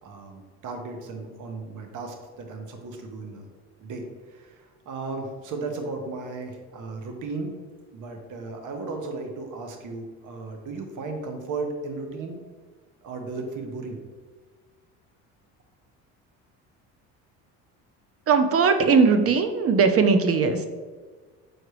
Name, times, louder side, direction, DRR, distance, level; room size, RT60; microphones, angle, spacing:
voice 1, 0.0-3.4 3.8-7.6 7.9-12.4 13.0-14.0, right 3 dB, 55° right, 4 dB, 1.2 m, -35 dB
voice 2, 18.3-20.7, right 5 dB, 40° right, 8 dB, 0.8 m, -19 dB
6.3 x 4.7 x 3.2 m, 1.4 s
supercardioid pair, 75°, 37 cm